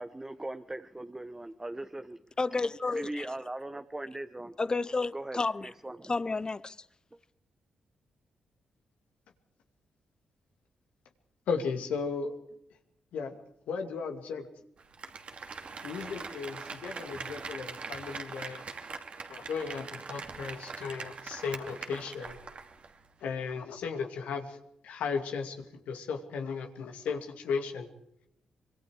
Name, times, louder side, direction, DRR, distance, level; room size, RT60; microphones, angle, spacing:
voice 1, 0.0-2.2 2.9-4.5 5.1-5.4 5.8-6.1, right 1 dB, 20° right, 1.3 m, -39 dB
voice 2, 2.4-3.3 4.6-5.7 6.0-6.8, left 3 dB, 35° left, 0.9 m, -31 dB
voice 3, 11.5-12.4 13.1-13.4 13.7-14.4 15.8-16.6 16.8-18.6 19.3-22.4 23.2-24.6 24.8-27.9, left 5 dB, 80° left, 2.4 m, -35 dB
Applause, 14.8-23.0 23.3-23.4, right 4 dB, 55° right, 2.8 m, -42 dB
25.0 x 22.5 x 4.8 m
supercardioid pair, 45°, 2 cm